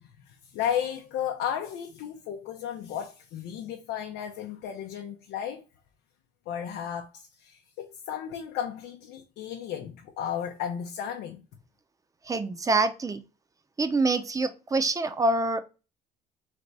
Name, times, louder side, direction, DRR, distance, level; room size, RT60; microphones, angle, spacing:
voice 1, 0.0-5.6 6.5-11.4, left 9 dB, 85° left, 0.6 m, -34 dB
voice 2, 12.3-13.2 13.8-15.6, right 2 dB, 20° right, 0.6 m, -25 dB
3.4 x 3.4 x 4.0 m
cardioid pair, 110°, 17 cm